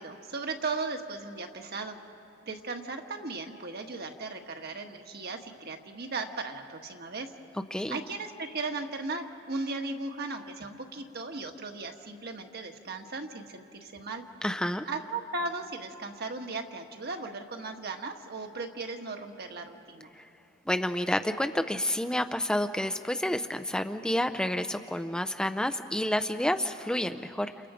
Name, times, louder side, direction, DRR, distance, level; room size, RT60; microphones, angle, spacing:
voice 1, 0.0-2.0 2.4-7.3 7.9-14.2 14.9-20.1, right 3 dB, 55° right, 4 dB, 1.5 m, -37 dB
voice 2, 14.4-14.9 20.1-20.3 20.7-27.7, left 1 dB, 5° left, 7 dB, 0.5 m, -29 dB
29.5 x 29.0 x 5.0 m, 2.8 s
head